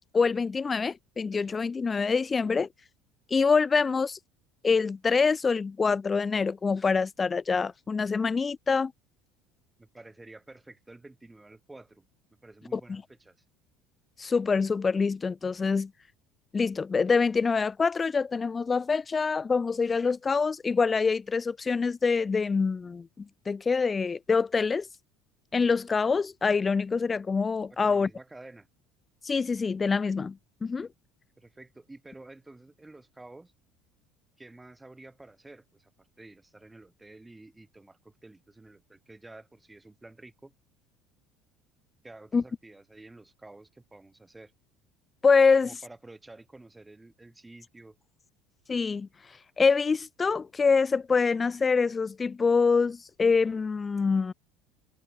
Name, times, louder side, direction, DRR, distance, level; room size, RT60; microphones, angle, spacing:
voice 1, 0.1-2.7 3.3-4.2 4.6-8.9 12.7-13.0 14.2-15.9 16.5-24.9 25.5-28.1 29.2-30.9 42.3-42.4 45.2-45.7 48.7-49.1 49.6-54.3, left 5 dB, 15° left, 1.3 m, -25 dB
voice 2, 9.8-12.1 12.4-13.4 27.8-28.7 31.4-33.5 34.4-40.5 42.0-44.5 45.6-48.0, right 2 dB, 10° right, 5.7 m, -50 dB
cardioid pair, 155°, 0 cm